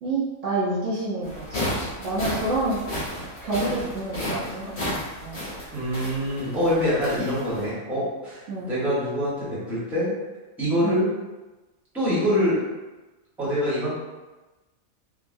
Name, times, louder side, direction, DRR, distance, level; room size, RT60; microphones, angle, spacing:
voice 1, 0.0-1.6 2.0-2.8 3.1-5.4 8.5-8.7 10.8-11.0, right 2 dB, 65° right, -7 dB, 0.9 m, -28 dB
sound 1, 1.2-7.7, left 1 dB, 65° left, 2.0 m, -33 dB
voice 2, 5.7-10.1 10.6-11.1 11.9-12.6 13.4-13.9, equal, ahead, -9 dB, 0.9 m, -25 dB
3.8 x 2.2 x 2.5 m, 1.1 s
omnidirectional pair, 1.5 m